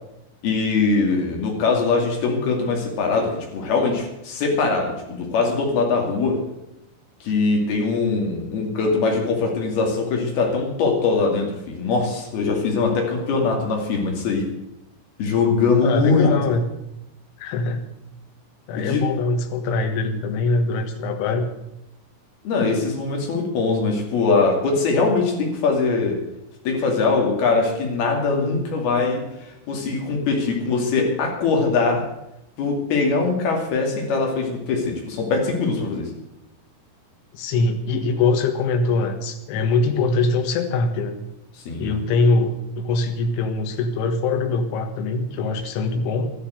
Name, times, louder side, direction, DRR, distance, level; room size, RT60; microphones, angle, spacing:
voice 1, 0.4-6.4 7.2-14.5 15.2-16.3 18.7-19.0 22.4-26.2 26.7-29.2 29.7-32.0 32.6-36.1 41.7-42.0, left 4 dB, 55° left, 1 dB, 4.1 m, -22 dB
voice 2, 15.8-16.7 17.4-17.9 18.7-21.5 37.3-41.2 41.8-46.3, left 3 dB, 80° left, 6 dB, 3.8 m, -22 dB
12.5 x 12.0 x 8.0 m, 0.87 s
omnidirectional pair, 5.6 m